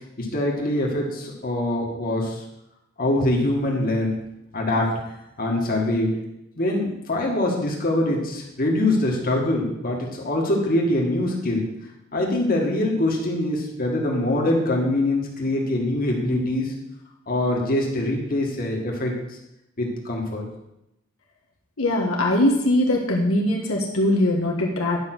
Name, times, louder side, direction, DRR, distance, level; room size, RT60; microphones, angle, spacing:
voice 1, 0.2-2.4 3.0-4.2 4.5-4.9 5.4-6.1 6.6-11.7 12.1-16.7 17.3-19.1 19.8-20.5, left 1 dB, 45° left, -1 dB, 2.0 m, -23 dB
voice 2, 21.8-25.0, left 1 dB, 85° left, -1 dB, 1.6 m, -21 dB
10.5 x 5.4 x 6.1 m, 0.87 s
head